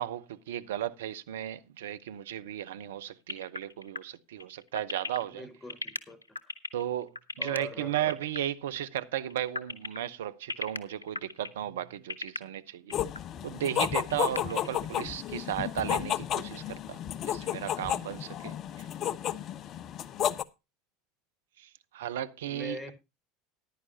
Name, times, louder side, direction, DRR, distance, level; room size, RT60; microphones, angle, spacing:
voice 1, 0.0-5.5 6.7-13.0 13.4-17.0 17.2-18.9 21.6-22.9, right 11 dB, 70° right, 0.8 m, -35 dB
sound 1, 3.3-7.6 8.1-8.4 8.6-8.8 9.2-10.0 10.5-11.6 12.0-12.4 12.9-13.2 13.6-13.7 13.9-14.7, left 2 dB, 85° left, 0.8 m, -36 dB
voice 2, 5.4-6.2 7.4-8.0 14.5-14.7 22.4-22.9, left 1 dB, 15° left, 4.4 m, -42 dB
sound 2, 12.9-20.4, left 11 dB, 40° left, 0.7 m, -32 dB
14.5 x 11.0 x 2.8 m
figure-of-eight pair, 75°, 0 cm